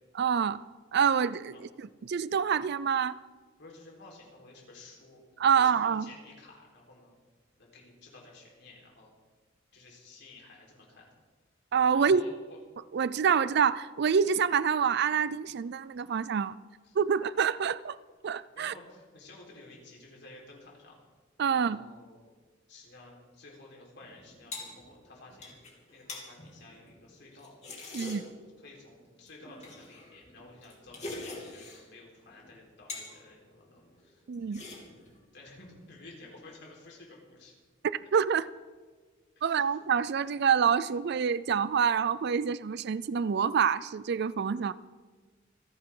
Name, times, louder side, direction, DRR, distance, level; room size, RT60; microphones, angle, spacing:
voice 1, 0.1-0.6 0.9-3.2 5.4-6.1 11.7-12.2 12.9-16.6 17.0-18.0 18.2-18.7 21.4-21.8 27.9-28.2 34.3-34.6 37.8-38.5 39.4-44.7, right 7 dB, 55° right, 0.4 m, -27 dB
voice 2, 3.6-5.2 5.6-7.1 7.6-9.1 9.7-11.1 11.9-12.6 16.8-17.0 18.6-21.0 21.5-22.3 22.7-25.5 25.9-27.5 27.9-28.1 28.6-34.2 34.5-35.0 35.3-37.5 39.4-39.7, left 2 dB, 60° left, 4.3 m, -53 dB
sound 1, 24.0-28.5 29.3-31.9 32.3-33.2 33.5-34.0 34.3-35.2, left 2 dB, 35° left, 3.1 m, -44 dB
27.0 x 10.5 x 3.8 m
head